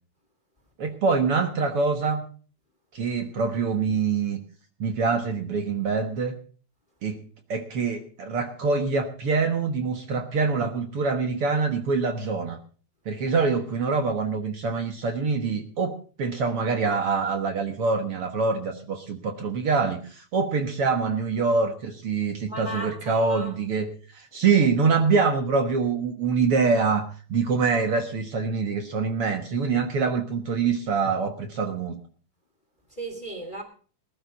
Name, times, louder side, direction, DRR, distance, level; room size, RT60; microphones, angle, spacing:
voice 1, 0.8-2.2 2.9-4.4 4.8-6.4 7.0-7.2 7.5-12.6 13.1-32.0, right 4 dB, 55° right, 2.0 m, -25 dB
voice 2, 22.5-23.5 24.5-24.7 32.9-33.6, right 1 dB, 20° left, 1.9 m, -36 dB
20.0 x 12.0 x 4.0 m
omnidirectional pair, 3.4 m